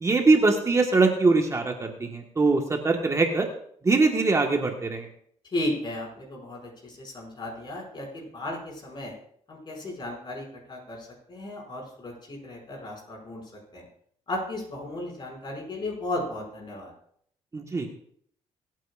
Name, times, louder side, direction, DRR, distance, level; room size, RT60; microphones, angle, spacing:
voice 1, 0.0-3.5 3.8-5.1 17.5-17.9, right 3 dB, 25° right, 2 dB, 1.5 m, -22 dB
voice 2, 5.5-9.1 9.5-13.4 13.7-13.8 14.3-16.9, left 1 dB, 40° left, -1 dB, 6.2 m, -35 dB
25.5 x 9.2 x 2.5 m, 0.64 s
cardioid pair, 100°, 12 cm